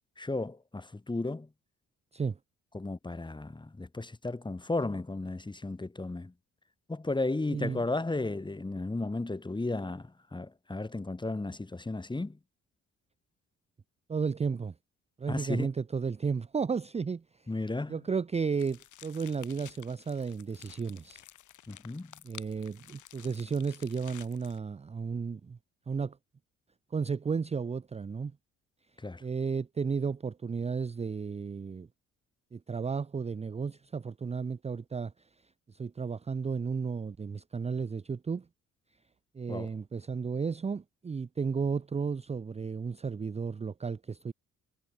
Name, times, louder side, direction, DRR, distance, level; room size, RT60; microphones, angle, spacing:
voice 1, 0.2-1.5 2.7-6.3 6.9-12.4 15.3-15.7 17.5-18.1 21.7-22.1 29.0-29.2 39.5-39.7, left 2 dB, 15° left, 2.6 m, -34 dB
voice 2, 7.5-7.8 14.1-14.7 15.2-17.2 17.9-21.2 22.2-25.6 25.9-26.2 26.9-28.3 29.2-31.9 32.5-35.1 35.7-38.5 39.3-44.3, right 5 dB, 20° right, 0.6 m, -33 dB
sound 1, 18.5-24.6, left 12 dB, 75° left, 5.3 m, -52 dB
cardioid pair, 90°, 30 cm